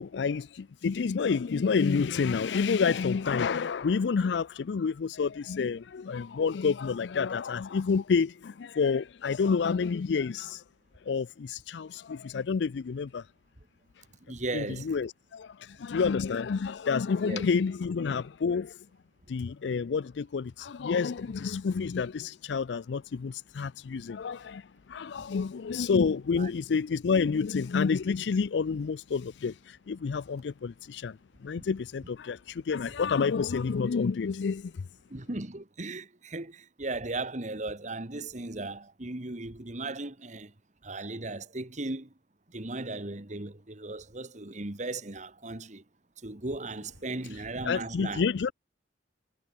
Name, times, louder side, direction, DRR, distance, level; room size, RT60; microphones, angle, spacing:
voice 1, 0.0-10.6 11.1-13.2 14.5-18.8 19.3-24.6 24.9-31.2 31.4-34.8 47.7-48.5, left 5 dB, 80° left, 0.4 m, -29 dB
voice 2, 14.3-14.9 17.2-17.5 26.4-26.5 35.1-40.5 40.8-42.1 42.5-45.8 46.2-48.3, right 2 dB, 40° right, 1.8 m, -37 dB
head